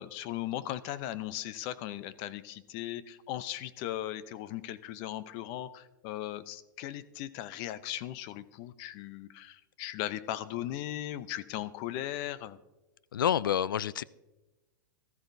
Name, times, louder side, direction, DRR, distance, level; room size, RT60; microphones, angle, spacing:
voice 1, 0.0-12.6, left 13 dB, 45° left, 15 dB, 0.7 m, -38 dB
voice 2, 13.1-14.0, left 10 dB, 85° left, 21 dB, 0.4 m, -28 dB
18.5 x 13.5 x 2.7 m, 1.1 s
hypercardioid pair, 115°, 11 cm